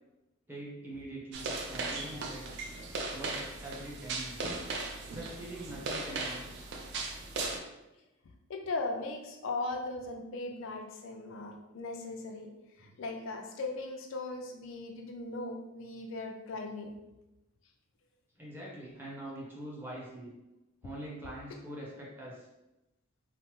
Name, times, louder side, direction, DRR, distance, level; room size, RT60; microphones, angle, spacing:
voice 1, 0.5-2.5 3.1-4.4 5.1-6.5 12.8-12.9 18.4-20.3 20.8-22.5, right 1 dB, 10° right, -5 dB, 0.6 m, -44 dB
sound 1, 1.3-7.6, right 3 dB, 55° right, 0.4 m, -37 dB
voice 2, 8.5-12.5 12.8-16.9, left 2 dB, 60° left, 3 dB, 0.3 m, -38 dB
3.1 x 2.0 x 3.0 m, 0.98 s
head